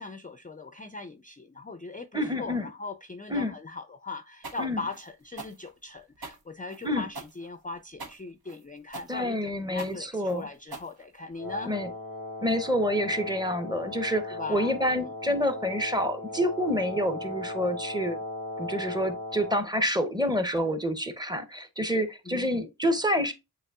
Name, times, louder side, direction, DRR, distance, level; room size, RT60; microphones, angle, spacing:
voice 1, 0.0-11.7 14.3-15.4 22.3-22.5, left 3 dB, 25° left, 0.4 m, -40 dB
voice 2, 2.1-2.7 3.3-3.5 4.6-4.8 6.8-7.1 9.1-10.5 11.6-11.9 12.4-18.2 18.6-23.3, equal, 10° right, 0.7 m, -28 dB
sound 1, 4.4-11.5, right 3 dB, 90° right, 0.9 m, -43 dB
Wind instrument woodwind instrument, 11.3-19.7, left 2 dB, 65° right, 2.9 m, -37 dB
7.9 x 2.9 x 2.3 m
wide cardioid pair, 55°, 36 cm